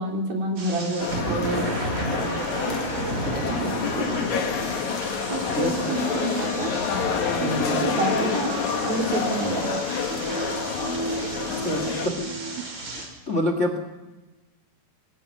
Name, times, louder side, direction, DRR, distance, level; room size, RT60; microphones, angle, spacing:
voice 1, 0.0-1.8 3.5-3.7 4.0-4.1 5.3-6.8 7.4-9.7, right 2 dB, 70° right, 0 dB, 5.5 m, -28 dB
sound 1, 0.6-13.1, right 2 dB, 50° right, 6.1 m, -33 dB
sound 2, 1.0-12.1, left 7 dB, 60° left, 2.6 m, -28 dB
voice 2, 3.2-3.9 5.5-5.8 7.4-7.7 11.6-12.3 13.3-13.8, left 1 dB, 35° left, 6 dB, 1.2 m, -28 dB
sound 3, 4.5-12.6, right 4 dB, 85° right, 1.2 m, -37 dB
25.5 x 22.0 x 5.5 m, 1.2 s
omnidirectional pair, 4.4 m